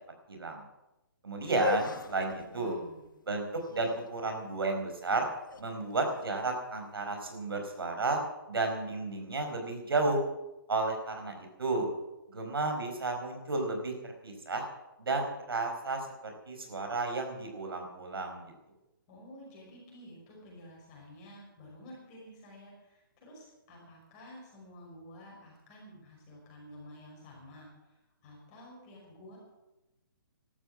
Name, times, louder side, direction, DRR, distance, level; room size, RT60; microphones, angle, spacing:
voice 1, 0.3-0.6 1.2-2.8 3.3-5.3 5.6-8.2 8.5-10.2 10.7-11.9 12.3-13.9 14.2-14.6 15.0-18.4, right 3 dB, 90° right, 4 dB, 4.8 m, -32 dB
sound 1, 1.4-7.3, left 6 dB, 60° left, 1.1 m, -40 dB
voice 2, 2.4-3.0 19.1-27.7 28.2-29.4, equal, 20° left, -3 dB, 5.5 m, -51 dB
14.0 x 12.5 x 7.3 m, 0.98 s
hypercardioid pair, 175°, 12 cm